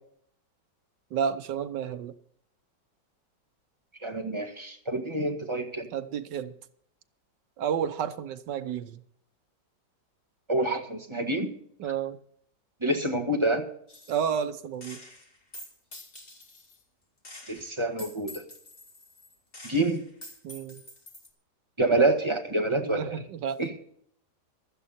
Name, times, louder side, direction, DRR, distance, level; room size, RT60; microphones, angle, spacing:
voice 1, 1.1-2.1 5.9-6.5 7.6-9.0 11.8-12.2 14.1-15.0 20.4-20.8 22.8-23.6, right 8 dB, 85° right, 11 dB, 1.5 m, -31 dB
voice 2, 4.0-5.9 10.5-11.5 12.8-13.6 17.5-18.4 19.6-20.0 21.8-23.2 23.6-23.7, right 2 dB, 15° right, 3 dB, 1.7 m, -27 dB
Gunshot gunfire, 13.9-14.4 14.8-16.8 17.2-21.3, left 1 dB, 30° left, 2.5 m, -47 dB
15.5 x 12.5 x 4.2 m, 0.65 s
omnidirectional pair, 1.9 m